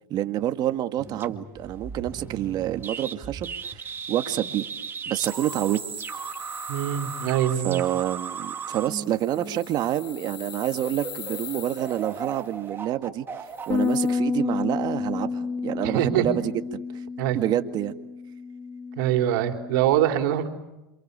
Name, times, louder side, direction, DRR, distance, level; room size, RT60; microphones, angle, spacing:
voice 1, 0.1-4.7 5.1-5.8 7.6-13.3 13.7-16.8 17.3-17.9, right 12 dB, 40° right, 8 dB, 1.9 m, -27 dB
sound 1, 1.0-9.8 10.4-10.5 10.8-14.7, right 6 dB, 20° right, 2.0 m, -36 dB
sound 2, 5.2-7.4 8.9-12.4 13.5-14.1, left 9 dB, 80° left, 5.2 m, -43 dB
voice 2, 6.7-7.8 15.8-16.2 17.2-17.4 19.0-20.5, right 11 dB, 65° right, 4 dB, 3.7 m, -23 dB
Bass guitar, 13.7-19.9, left 5 dB, 25° left, 1.8 m, -30 dB
29.0 x 27.0 x 6.9 m, 0.99 s
supercardioid pair, 120°, 11 cm